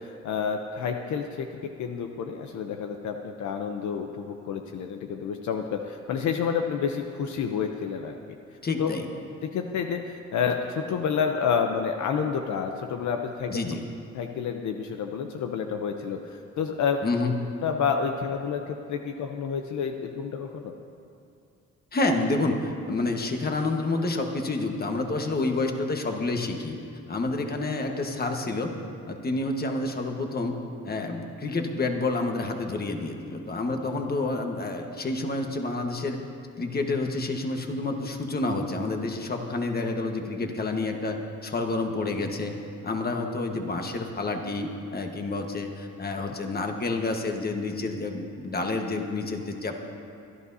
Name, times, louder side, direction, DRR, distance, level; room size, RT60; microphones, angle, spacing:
voice 1, 0.0-8.3 8.8-8.9 9.4-13.6 14.1-17.0 17.6-20.8 35.2-35.3, left 6 dB, 70° left, 4 dB, 0.8 m, -29 dB
voice 2, 8.6-9.1 13.5-13.8 17.0-17.3 21.9-26.8 27.1-28.7 29.1-30.5 30.8-36.2 36.6-42.5 42.8-49.9, left 2 dB, 30° left, 3 dB, 1.4 m, -29 dB
24.5 x 11.0 x 2.8 m, 2.5 s
cardioid pair, 90°, 30 cm